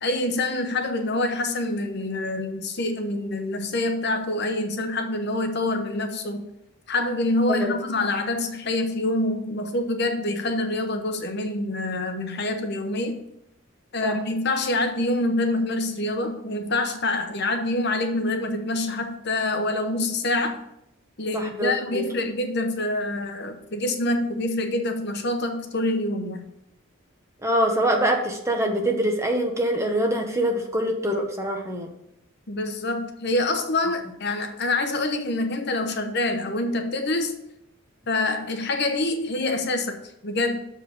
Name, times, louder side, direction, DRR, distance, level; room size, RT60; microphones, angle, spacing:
voice 1, 0.0-6.5 6.9-13.2 13.9-20.6 21.2-26.5 32.5-37.4 38.1-40.6, left 2 dB, 50° left, 6 dB, 0.9 m, -26 dB
voice 2, 21.3-22.0 27.4-31.9, right 1 dB, 15° right, 2 dB, 1.0 m, -24 dB
7.0 x 4.8 x 6.6 m, 0.79 s
head